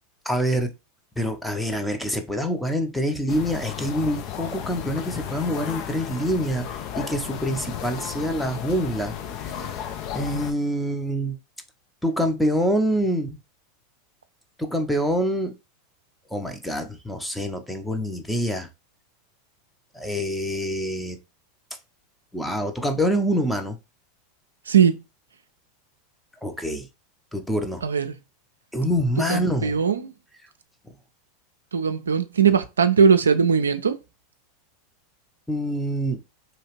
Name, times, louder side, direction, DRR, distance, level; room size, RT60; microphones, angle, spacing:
voice 1, 0.3-0.7 1.2-9.1 9.4-9.6 10.1-11.4 12.0-13.3 14.6-15.5 16.3-18.7 19.9-21.2 22.3-23.8 26.4-26.9 27.3-27.8 28.7-29.8 35.5-36.2, equal, 5° left, 0.6 m, -26 dB
sound 1, 3.3-10.5, left 9 dB, 50° left, 0.5 m, -34 dB
voice 2, 24.7-25.0 27.8-28.2 29.3-30.1 31.7-34.0, right 6 dB, 85° right, 0.3 m, -19 dB
2.8 x 2.4 x 3.0 m
hypercardioid pair, 85°, 0 cm